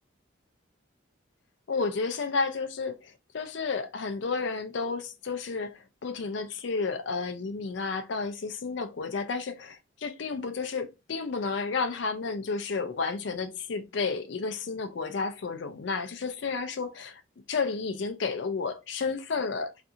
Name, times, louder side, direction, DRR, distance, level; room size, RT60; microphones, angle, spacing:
voice 1, 1.7-17.2 17.5-19.7, left 4 dB, 65° left, 0.4 m, -31 dB
2.6 x 2.4 x 2.6 m
head